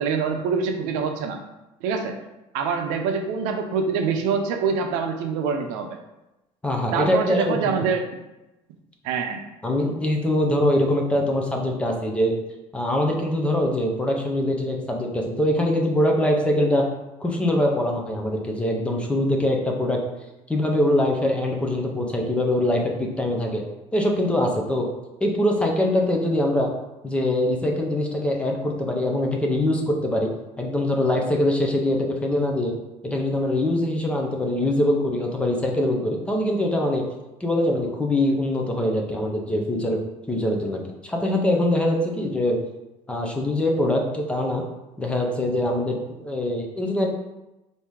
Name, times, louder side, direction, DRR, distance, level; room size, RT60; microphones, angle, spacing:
voice 1, 0.0-1.4 1.8-2.1 2.5-6.0 6.9-8.1 9.0-9.4, right 5 dB, 90° right, 5 dB, 0.6 m, -25 dB
voice 2, 6.6-7.7 9.6-12.3 12.7-16.9 17.2-20.0 20.5-23.6 23.9-24.9 25.2-26.7 27.0-30.3 30.6-32.7 33.0-37.1 37.4-40.0 40.3-42.6 43.1-44.6 45.0-46.0 46.2-47.1, left 1 dB, 10° left, 0 dB, 0.5 m, -23 dB
3.5 x 2.7 x 4.6 m, 0.98 s
cardioid pair, 155°, 13 cm